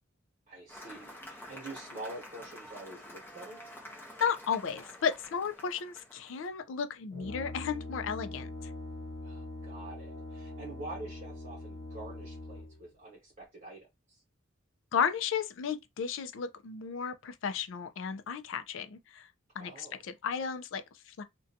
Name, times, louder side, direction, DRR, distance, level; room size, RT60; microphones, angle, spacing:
voice 1, 0.5-3.6 9.2-14.2 19.6-20.0, right 2 dB, 30° right, 1.0 m, -46 dB
Cheering / Applause, 0.7-6.5, left 1 dB, 10° left, 0.6 m, -48 dB
voice 2, 4.2-8.5 14.9-19.3 19.6-21.2, left 7 dB, 65° left, 0.4 m, -34 dB
Brass instrument, 7.1-12.9, left 2 dB, 40° left, 1.0 m, -42 dB
2.5 x 2.2 x 2.6 m
head